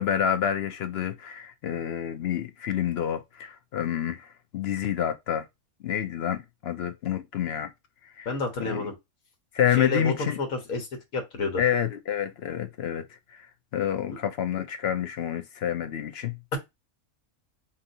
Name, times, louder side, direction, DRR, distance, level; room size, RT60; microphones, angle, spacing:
voice 1, 0.0-5.5 5.8-7.7 8.2-8.3 8.6-8.9 9.5-10.4 11.6-13.0 13.3-13.5 13.7-16.4, left 9 dB, 60° left, 0.7 m, -28 dB
voice 2, 8.3-9.0 9.8-10.9 11.1-11.6, left 3 dB, 85° left, 1.7 m, -29 dB
5.2 x 2.6 x 2.6 m
omnidirectional pair, 1.5 m